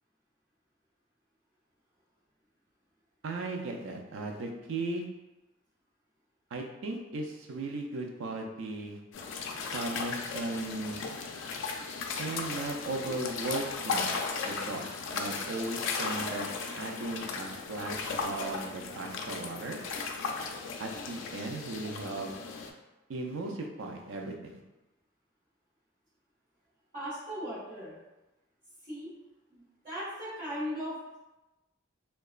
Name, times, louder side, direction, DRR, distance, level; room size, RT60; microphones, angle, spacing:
voice 1, 3.2-5.1 6.5-9.0 9.7-11.0 12.2-14.2 14.4-16.5 16.8-19.8 20.8-22.3 23.1-24.6, right 2 dB, 80° right, 2 dB, 0.4 m, -37 dB
sound 1, 9.1-22.7, left 4 dB, 75° left, 0.3 m, -36 dB
voice 2, 26.9-27.9 28.8-29.1 29.5-31.2, equal, 40° right, -11 dB, 1.2 m, -38 dB
2.8 x 2.2 x 2.3 m, 1.0 s
head